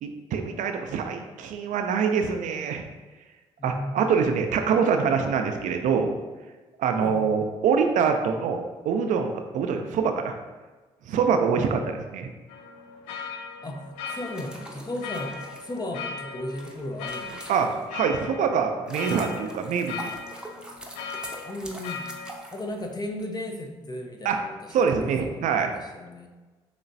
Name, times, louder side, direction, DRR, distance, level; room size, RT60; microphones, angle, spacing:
voice 1, 0.0-2.8 3.6-6.2 6.8-10.3 11.1-12.3 17.5-19.9 24.2-24.4 24.7-25.7, right 6 dB, 65° right, 5 dB, 0.5 m, -25 dB
voice 2, 3.6-4.0 7.0-7.3 9.7-9.9 11.5-11.8 13.6-17.8 21.4-22.1 22.5-24.7 25.0-26.3, left 1 dB, 30° left, 3 dB, 0.8 m, -36 dB
sound 1, 12.5-22.4, left 5 dB, 80° left, 0.4 m, -38 dB
sound 2, 14.0-18.1 18.5-23.2, right 1 dB, 5° right, 0.9 m, -43 dB
6.0 x 3.0 x 2.7 m, 1.3 s
hypercardioid pair, 50°, 14 cm